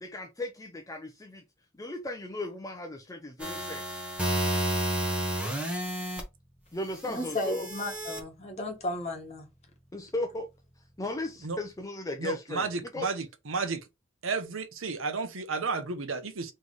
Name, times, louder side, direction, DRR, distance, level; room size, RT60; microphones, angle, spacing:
voice 1, 0.0-1.4 1.8-4.0 6.7-7.7 9.9-10.5 11.0-13.1, left 2 dB, 15° left, 0.5 m, -36 dB
sound 1, 3.4-6.2 7.1-8.2, right 1 dB, 5° right, 0.9 m, -31 dB
voice 2, 7.1-9.5, left 1 dB, 30° left, 1.2 m, -34 dB
voice 3, 12.2-13.8 14.2-16.5, right 4 dB, 70° right, 0.8 m, -32 dB
3.3 x 3.2 x 3.9 m
head